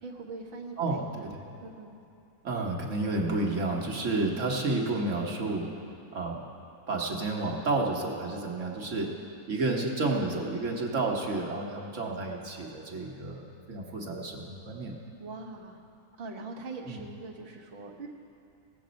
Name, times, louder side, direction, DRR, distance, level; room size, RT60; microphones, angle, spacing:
voice 1, 0.0-1.3 1.6-1.9 11.7-12.1 15.2-15.8 16.2-18.1, right 3 dB, 45° right, -3 dB, 1.2 m, -42 dB
voice 2, 0.8-1.4 2.4-5.7 6.1-6.4 6.9-9.1 9.5-14.9 16.9-17.0, right 2 dB, 60° right, -1 dB, 1.5 m, -31 dB
18.5 x 7.8 x 5.1 m, 2.7 s
omnidirectional pair, 1.5 m